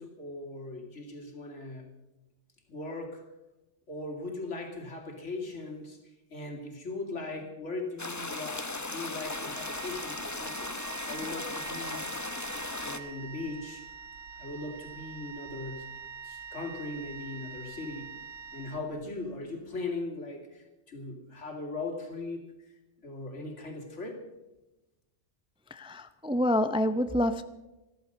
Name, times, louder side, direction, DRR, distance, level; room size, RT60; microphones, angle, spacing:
voice 1, 0.0-1.9 2.7-3.2 3.9-6.0 6.3-12.1 12.8-13.9 14.4-15.9 16.2-18.1 18.5-22.7 23.0-24.2, left 2 dB, 85° left, 2 dB, 2.8 m, -39 dB
sound 1, 8.0-13.0, left 2 dB, 20° left, 0.7 m, -37 dB
Wind instrument woodwind instrument, 9.2-19.3, right 6 dB, 80° right, 1.3 m, -45 dB
voice 2, 25.7-27.4, left 1 dB, 10° right, 10 dB, 0.3 m, -27 dB
14.0 x 13.0 x 6.6 m, 1.0 s
omnidirectional pair, 1.2 m